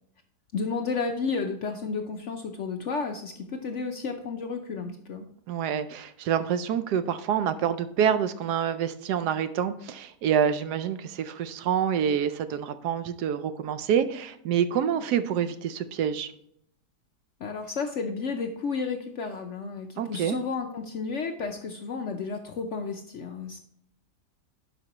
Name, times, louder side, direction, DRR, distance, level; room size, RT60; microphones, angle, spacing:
voice 1, 0.5-5.2 17.4-23.6, left 4 dB, 65° left, 5 dB, 0.7 m, -32 dB
voice 2, 5.5-16.3 20.0-20.4, right 8 dB, 75° right, 11 dB, 1.1 m, -27 dB
11.0 x 5.3 x 2.9 m, 0.71 s
omnidirectional pair, 1.8 m